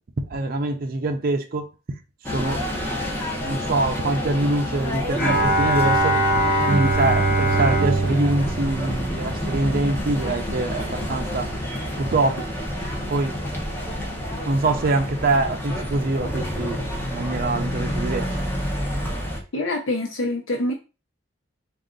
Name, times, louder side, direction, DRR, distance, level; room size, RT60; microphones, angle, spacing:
voice 1, 0.2-1.7 2.3-2.6 3.4-11.5 12.0-12.5 13.1-13.3 14.5-16.8 17.1-18.3, right 2 dB, 50° right, 0.5 m, -24 dB
sound 1, 2.2-19.4, equal, 10° left, 0.8 m, -29 dB
Bowed string instrument, 5.2-9.6, right 1 dB, 40° left, 2.2 m, -22 dB
voice 2, 19.5-20.7, left 1 dB, 80° left, 0.8 m, -25 dB
3.7 x 2.4 x 3.7 m
head